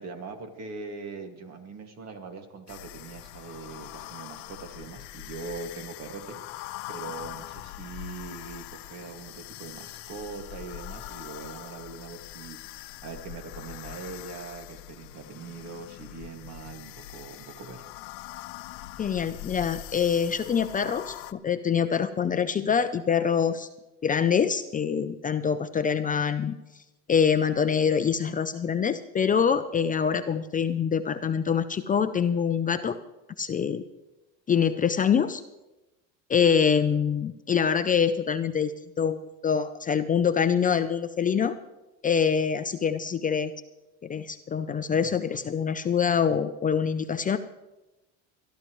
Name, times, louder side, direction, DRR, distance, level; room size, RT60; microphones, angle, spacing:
voice 1, 0.0-17.9, right 4 dB, 50° right, 5 dB, 2.1 m, -41 dB
sound 1, 2.7-21.3, left 14 dB, 80° left, 0.7 m, -42 dB
voice 2, 19.0-23.7 24.0-26.6 27.1-33.0 33.4-33.8 34.5-35.4 36.3-39.2 39.4-41.6 42.0-43.5 44.0-47.4, left 7 dB, 25° left, 10 dB, 0.5 m, -25 dB
21.5 x 12.5 x 3.1 m, 1.0 s
supercardioid pair, 105°, 33 cm